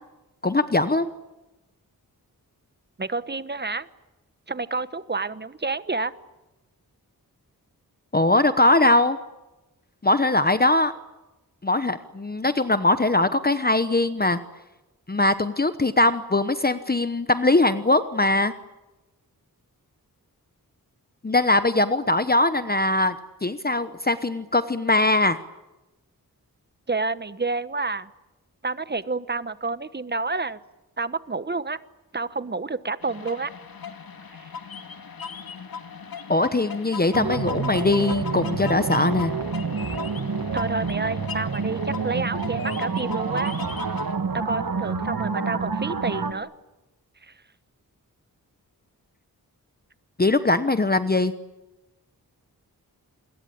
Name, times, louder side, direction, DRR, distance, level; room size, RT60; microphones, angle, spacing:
voice 1, 0.4-1.1 8.1-9.2 10.0-10.9 11.6-14.4 15.1-18.5 21.2-23.2 23.4-25.4 36.3-39.3 50.2-51.3, left 2 dB, 25° left, 11 dB, 1.0 m, -21 dB
voice 2, 3.0-3.9 4.5-6.1 26.9-28.1 28.6-30.6 31.0-31.8 32.1-33.5 40.5-43.5 44.3-46.5, right 3 dB, 30° right, 14 dB, 1.2 m, -29 dB
sound 1, 33.0-44.1, left 5 dB, 75° left, 2.2 m, -38 dB
sound 2, 37.1-46.3, right 5 dB, 70° right, 2.3 m, -28 dB
27.5 x 22.0 x 8.7 m, 1.0 s
wide cardioid pair, 105°, 36 cm